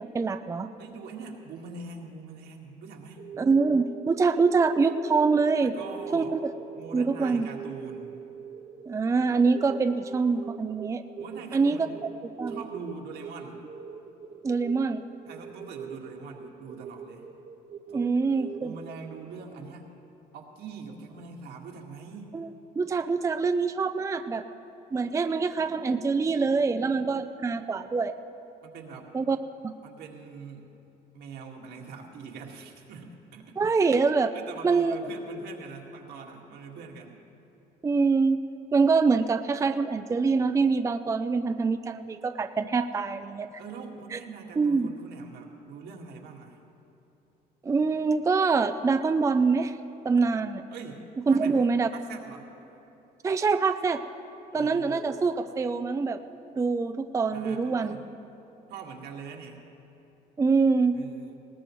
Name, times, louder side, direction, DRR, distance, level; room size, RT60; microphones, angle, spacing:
voice 1, 0.0-0.7 3.4-5.7 6.1-6.5 6.9-7.5 8.9-11.0 11.5-11.8 12.4-12.6 14.4-15.0 17.9-18.7 22.3-22.5 22.8-24.4 24.9-28.1 29.1-29.4 29.6-29.7 33.6-34.3 34.6-35.0 37.8-38.4 38.7-43.5 44.1-44.2 44.6-44.9 47.6-49.8 50.0-50.6 51.3-51.9 53.2-54.0 54.5-56.2 56.6-57.9 60.4-61.0, right 4 dB, 20° right, 9 dB, 0.5 m, -25 dB
voice 2, 0.8-3.2 5.6-6.4 6.7-8.2 11.2-12.1 12.5-13.6 15.3-17.3 17.9-18.2 18.6-19.9 20.3-22.4 28.6-29.1 29.8-30.7 31.1-33.6 34.3-37.2 43.6-46.6 50.7-52.5 54.5-55.2 57.3-58.1 58.7-59.7 60.9-61.4, right 5 dB, 75° right, 0 dB, 2.0 m, -43 dB
sound 1, 3.2-19.4, right 6 dB, 45° right, 0.9 m, -43 dB
20.0 x 18.0 x 3.1 m, 3.0 s
cardioid pair, 110°, 17 cm